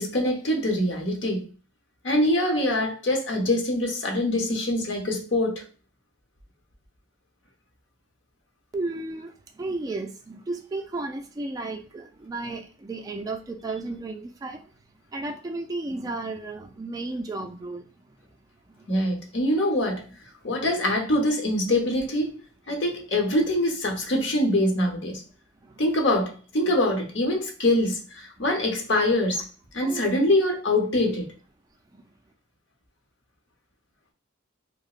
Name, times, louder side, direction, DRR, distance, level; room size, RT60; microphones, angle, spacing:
voice 1, 0.0-1.5 2.0-5.6 18.9-20.0 20.4-22.4 22.7-25.2 25.8-29.4 29.7-31.3, left 1 dB, 65° left, 0.9 m, -24 dB
voice 2, 8.7-9.3 9.6-14.6 15.1-17.8 29.8-30.0, right 2 dB, 20° right, 0.3 m, -33 dB
4.8 x 2.1 x 2.4 m
head